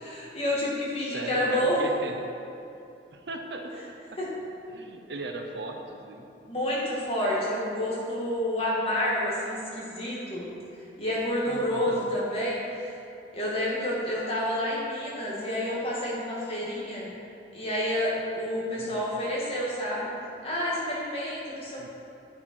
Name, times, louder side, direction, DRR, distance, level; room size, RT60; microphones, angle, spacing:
voice 1, 0.0-1.8 4.2-4.3 6.5-10.5 11.0-12.9 13.3-17.1 17.5-20.1 20.4-21.9, left 1 dB, 35° left, -6 dB, 2.0 m, -29 dB
voice 2, 1.0-2.2 3.1-3.8 4.1-4.2 4.7-6.3 11.4-12.1 18.7-19.1 21.8-21.9, right 2 dB, 70° right, 3 dB, 0.8 m, -38 dB
9.5 x 6.6 x 4.5 m, 2.7 s
head